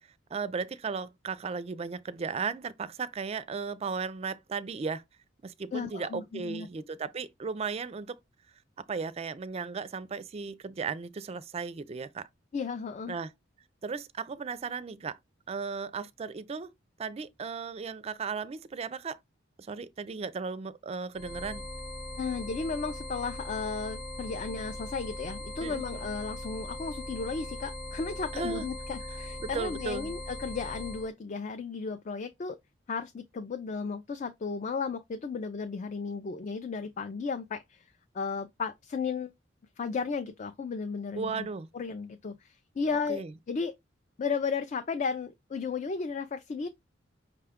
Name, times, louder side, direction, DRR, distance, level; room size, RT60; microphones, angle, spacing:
voice 1, 0.3-5.0 5.4-8.2 8.8-12.3 13.1-13.3 13.8-15.2 15.5-16.7 17.0-19.2 19.7-21.7 25.6-26.1 28.3-28.6 29.4-30.1 41.1-41.7 43.1-43.3, right 5 dB, 30° right, 0.3 m, -35 dB
voice 2, 5.7-6.7 12.5-13.2 22.2-32.6 32.9-37.8 38.1-39.3 39.8-41.5 41.7-43.7 44.2-46.7, left 5 dB, 40° left, 0.4 m, -34 dB
sound 1, 21.1-31.1, left 1 dB, 25° left, 0.9 m, -40 dB
5.7 x 2.3 x 3.5 m
head